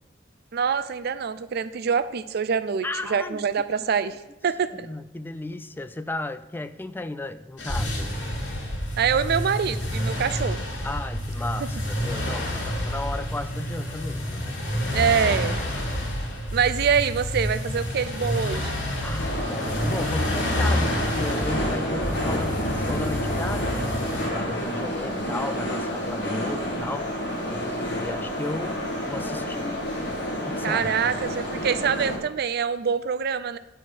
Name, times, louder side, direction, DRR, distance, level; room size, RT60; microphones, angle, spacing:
voice 1, 0.5-4.9 9.0-10.6 14.9-15.6 16.5-18.7 30.6-33.6, right 6 dB, 60° right, 13 dB, 0.4 m, -25 dB
voice 2, 2.8-3.4 4.7-8.1 10.8-14.6 19.0-23.9 24.3-27.1 27.5-29.8 30.4-31.2, left 2 dB, 10° left, 11 dB, 0.4 m, -34 dB
sound 1, 7.6-24.3, left 1 dB, 90° left, 2.6 m, -29 dB
sound 2, 19.2-32.2, equal, 65° left, 1.8 m, -29 dB
9.0 x 4.5 x 6.2 m, 0.94 s
head